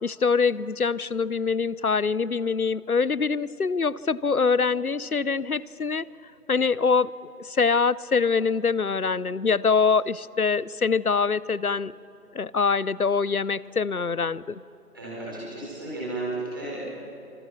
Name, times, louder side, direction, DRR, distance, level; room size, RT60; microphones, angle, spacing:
voice 1, 0.0-6.1 6.5-11.9 12.3-14.6, left 5 dB, 65° left, 21 dB, 0.7 m, -24 dB
voice 2, 14.9-16.8, right 2 dB, 15° right, -8 dB, 4.6 m, -33 dB
29.0 x 26.5 x 5.9 m, 2.9 s
figure-of-eight pair, 170°, 47 cm